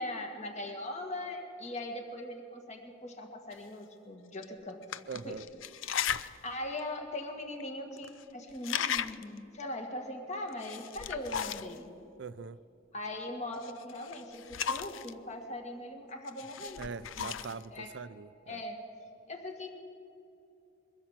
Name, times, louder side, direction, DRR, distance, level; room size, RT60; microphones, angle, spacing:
voice 1, 0.0-4.8 5.2-5.4 6.4-11.9 12.9-14.4 14.7-17.4 17.7-18.0 18.5-18.8 19.3-19.7, left 1 dB, 35° left, 2.0 m, -40 dB
sound 1, 3.5-3.6 4.3-4.4 4.8-6.4 6.8-6.9 7.6-7.7 7.9-8.2 8.5-9.4 10.5-11.8 13.6-15.1 16.3-17.7, left 8 dB, 80° left, 0.6 m, -36 dB
voice 2, 5.1-5.4 12.2-12.6 16.8-18.6, right 5 dB, 65° right, 0.5 m, -42 dB
22.5 x 15.5 x 7.5 m
head